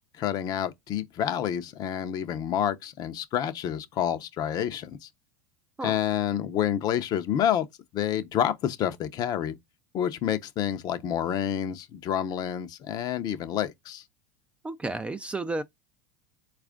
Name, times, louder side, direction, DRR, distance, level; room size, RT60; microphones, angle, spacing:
voice 1, 0.2-4.9 5.8-7.7 7.9-9.5 9.9-14.0, left 10 dB, 40° left, 0.7 m, -28 dB
voice 2, 14.6-15.6, right 2 dB, 10° right, 0.4 m, -32 dB
4.2 x 2.4 x 3.5 m
supercardioid pair, 115°, 10 cm